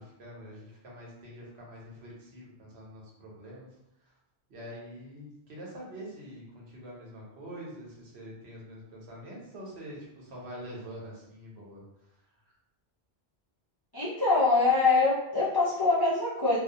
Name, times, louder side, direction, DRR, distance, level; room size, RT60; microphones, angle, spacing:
voice 1, 0.0-3.7 4.0-4.1 4.5-11.8 12.4-12.5, equal, 75° right, -4 dB, 1.0 m, -45 dB
voice 2, 13.9-16.6, left 3 dB, 35° left, -8 dB, 0.3 m, -24 dB
2.3 x 2.1 x 2.6 m, 0.84 s
omnidirectional pair, 1.1 m